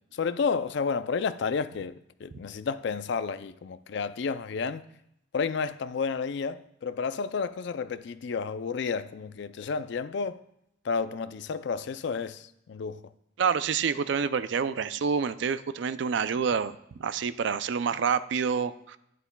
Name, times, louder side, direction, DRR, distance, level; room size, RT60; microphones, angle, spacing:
voice 1, 0.1-4.8 5.3-10.4 10.8-13.0, left 5 dB, 60° left, 0.4 m, -31 dB
voice 2, 13.4-16.7 17.0-19.0, right 6 dB, 60° right, 0.4 m, -27 dB
11.0 x 9.3 x 2.2 m
head